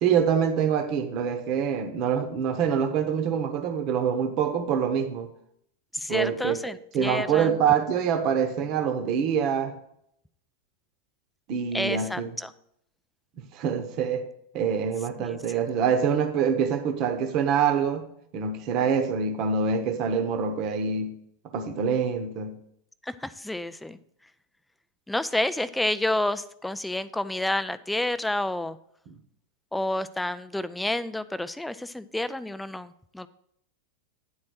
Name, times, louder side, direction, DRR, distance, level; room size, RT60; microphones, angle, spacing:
voice 1, 0.0-5.3 6.1-6.6 6.9-9.7 11.5-12.3 13.4-14.3 14.5-18.0 18.3-21.2 21.5-22.6 29.1-29.2, right 7 dB, 40° right, 7 dB, 1.0 m, -25 dB
voice 2, 5.9-7.6 11.7-12.5 15.2-15.4 23.0-24.0 25.1-28.8 29.7-33.3, left 1 dB, 5° left, 14 dB, 0.4 m, -29 dB
10.5 x 4.2 x 6.3 m, 0.72 s
figure-of-eight pair, 90°, 0 cm